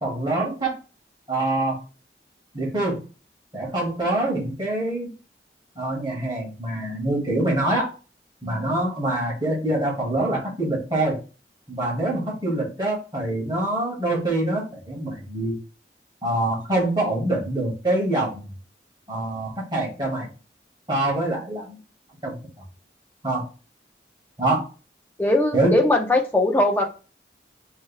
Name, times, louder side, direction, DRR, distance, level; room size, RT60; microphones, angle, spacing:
voice 1, 0.0-0.8 1.3-1.8 2.5-3.1 3.5-5.1 5.8-7.9 8.4-11.2 11.7-15.6 16.2-18.5 19.1-20.3 20.9-21.8 22.2-22.4 23.2-23.5 24.4-24.7 25.5-25.8, right 1 dB, 25° right, -3 dB, 2.0 m, -25 dB
voice 2, 25.2-26.9, left 1 dB, 10° left, 1 dB, 0.8 m, -20 dB
6.3 x 3.3 x 2.2 m, 0.33 s
head